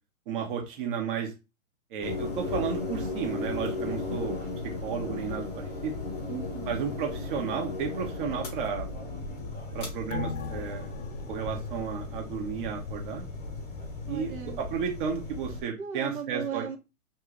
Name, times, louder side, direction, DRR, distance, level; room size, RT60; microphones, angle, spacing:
voice 1, 0.3-1.3 1.9-4.4 4.6-6.0 6.7-8.9 9.7-10.9 11.3-13.3 14.1-16.7, right 7 dB, 35° right, 2 dB, 0.8 m, -33 dB
sound 1, 2.0-15.6, left 3 dB, 15° left, 0.7 m, -36 dB
voice 2, 6.3-7.0 14.1-14.6 15.8-16.8, right 7 dB, 75° right, 4 dB, 1.0 m, -37 dB
sound 2, 10.1-13.0 13.4-13.5, left 6 dB, 65° left, 0.6 m, -40 dB
3.0 x 2.3 x 3.6 m, 0.26 s
hypercardioid pair, 135°, 43 cm